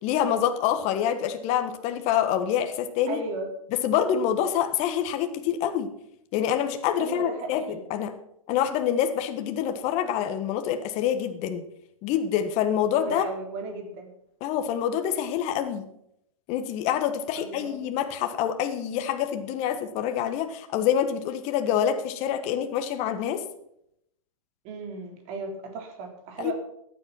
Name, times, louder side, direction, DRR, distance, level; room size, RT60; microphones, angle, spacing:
voice 1, 0.0-3.2 3.8-5.9 6.3-7.6 7.9-8.1 8.5-11.6 12.0-13.2 14.4-15.8 16.5-23.4 26.4-26.5, left 9 dB, 35° left, 8 dB, 1.5 m, -26 dB
voice 2, 3.1-3.5 7.0-7.8 13.0-14.1 17.3-17.9 24.6-26.5, right 3 dB, 40° right, 4 dB, 3.9 m, -36 dB
14.5 x 10.0 x 5.9 m, 0.77 s
hypercardioid pair, 120°, 18 cm